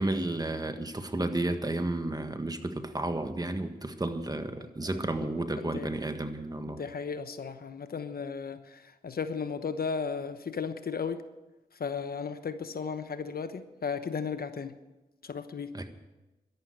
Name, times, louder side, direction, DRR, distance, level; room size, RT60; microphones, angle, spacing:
voice 1, 0.0-6.8 15.7-15.9, right 2 dB, 25° right, 8 dB, 1.5 m, -32 dB
voice 2, 5.6-6.0 6.7-11.2 11.8-14.7 15.2-15.7, left 5 dB, 65° left, 10 dB, 1.0 m, -35 dB
12.5 x 11.5 x 7.9 m, 1.1 s
cardioid pair, 50°, 17 cm